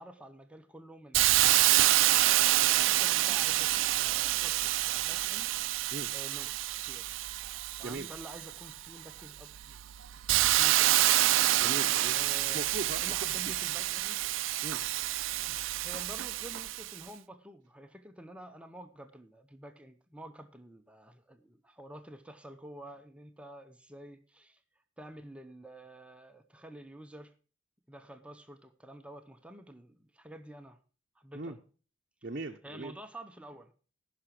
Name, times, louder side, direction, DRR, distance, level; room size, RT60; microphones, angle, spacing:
voice 1, 0.0-2.1 2.4-5.5 5.8-7.2 7.8-9.9 10.6-11.3 12.1-12.7 12.9-14.3 15.8-24.6 25.0-27.3 27.9-30.8 31.2-31.6 32.6-33.7, right 1 dB, 5° right, 7 dB, 0.7 m, -49 dB
Hiss, 1.1-8.7 9.2-17.0, right 15 dB, 85° right, 0.4 m, -27 dB
voice 2, 11.5-12.2 12.5-13.0 14.6-14.8 31.3-31.6 32.2-32.9, right 2 dB, 45° right, -1 dB, 0.8 m, -39 dB
15.0 x 5.9 x 5.9 m, 0.39 s
head